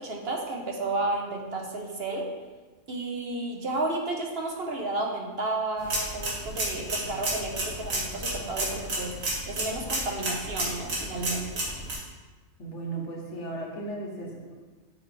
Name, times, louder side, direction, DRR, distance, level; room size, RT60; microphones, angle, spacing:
voice 1, 0.0-2.3 2.9-9.2 9.5-11.6, right 2 dB, 50° right, 1 dB, 1.1 m, -32 dB
sound 1, 5.8-11.9, right 1 dB, 90° right, 2.1 m, -32 dB
voice 2, 12.6-14.6, right 2 dB, 60° left, -1 dB, 1.5 m, -36 dB
7.5 x 6.4 x 3.4 m, 1.3 s
omnidirectional pair, 1.4 m